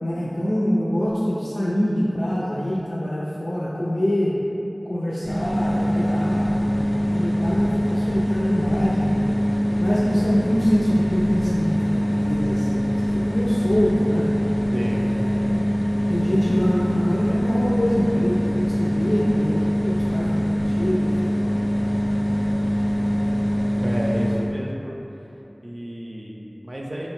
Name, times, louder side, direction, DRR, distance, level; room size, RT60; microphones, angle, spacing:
voice 1, 0.0-4.3 4.9-9.3 9.8-14.3 14.9-15.6 16.1-21.3, equal, 85° left, -8 dB, 0.4 m, -25 dB
sound 1, 5.2-24.5, equal, 10° left, 0.5 m, -23 dB
voice 2, 14.7-15.0 23.8-25.0 25.6-27.1, equal, 55° right, -3 dB, 0.5 m, -30 dB
4.4 x 2.2 x 4.1 m, 3.0 s
wide cardioid pair, 45°, 0 cm